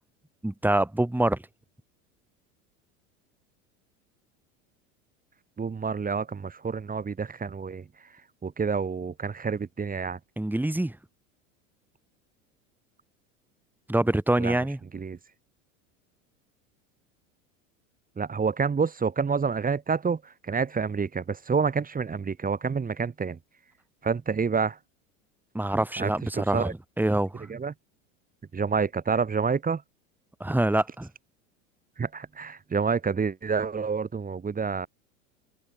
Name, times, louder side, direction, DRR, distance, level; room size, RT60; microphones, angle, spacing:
voice 1, 0.4-1.4 10.4-11.0 13.9-14.8 25.5-26.7 27.0-27.5 30.4-31.1, right 1 dB, 5° right, 6.9 m, -25 dB
voice 2, 5.6-7.8 8.4-10.2 14.4-14.6 14.9-15.2 18.2-23.4 24.0-24.8 26.0-26.7 27.5-27.7 28.5-29.8 32.0-34.9, right 5 dB, 20° right, 6.7 m, -28 dB
open air
hypercardioid pair, 100°, 40 cm